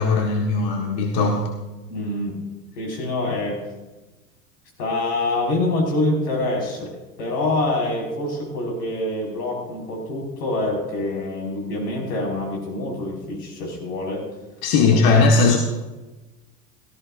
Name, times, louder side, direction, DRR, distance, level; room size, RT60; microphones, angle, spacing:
voice 1, 0.0-1.4 14.6-15.6, left 4 dB, 45° left, 2 dB, 1.6 m, -18 dB
voice 2, 1.9-2.4 2.8-3.6 4.8-6.9 7.2-14.2 14.8-15.0, left 2 dB, 75° left, 0 dB, 5.4 m, -25 dB
17.5 x 14.5 x 2.6 m, 1.1 s
hypercardioid pair, 90°, 49 cm